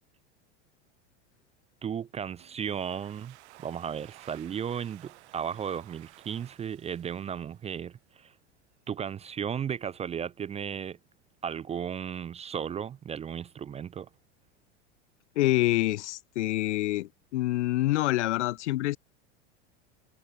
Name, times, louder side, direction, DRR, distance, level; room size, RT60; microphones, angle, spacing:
voice 1, 1.8-3.4 3.6-8.3 8.9-11.0 11.4-14.1, right 8 dB, 20° right, 0.5 m, -35 dB
Domestic sounds home sounds, 2.4-8.0, right 19 dB, 75° right, 7.5 m, -55 dB
voice 2, 15.4-19.0, left 17 dB, 80° left, 2.0 m, -26 dB
supercardioid pair, 125°, 34 cm